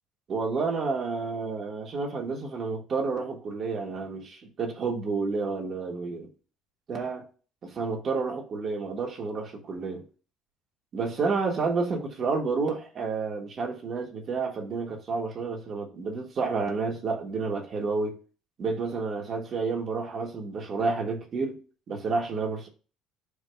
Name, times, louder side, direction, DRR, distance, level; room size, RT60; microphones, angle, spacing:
voice 1, 0.3-6.3 6.9-7.2 7.6-10.1 10.9-18.2 18.6-21.6 21.9-22.7, right 4 dB, 40° right, 1.5 m, -30 dB
11.0 x 4.9 x 2.3 m
cardioid pair, 120°, 0 cm